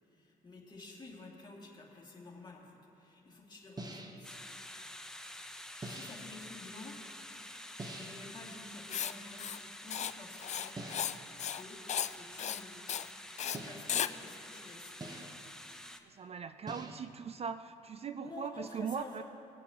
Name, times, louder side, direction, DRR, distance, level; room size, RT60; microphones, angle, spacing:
voice 1, 0.1-4.4 4.9-5.2 5.8-7.0 8.0-10.8 11.4-11.8 12.2-12.8 13.6-15.0 18.2-19.2, left 3 dB, 25° left, -4 dB, 2.6 m, -50 dB
sound 1, 3.8-4.3 5.8-6.4 7.8-8.4 10.8-11.3 13.5-14.2 15.0-15.6 16.7-17.2, right 2 dB, 25° right, 1.0 m, -46 dB
sound 2, 4.2-16.0, left 1 dB, 5° left, 0.7 m, -49 dB
Writing, 8.9-9.1 9.4-9.6 9.9-10.1 10.4-11.1 11.4-11.6 11.9-12.1 12.4-12.6 12.9-13.1 13.4-13.6 13.9-14.1, left 9 dB, 45° left, 0.4 m, -35 dB
voice 2, 16.0-19.2, right 6 dB, 40° right, 11 dB, 0.4 m, -40 dB
20.0 x 8.3 x 3.0 m, 3.0 s
cardioid pair, 85°, 17 cm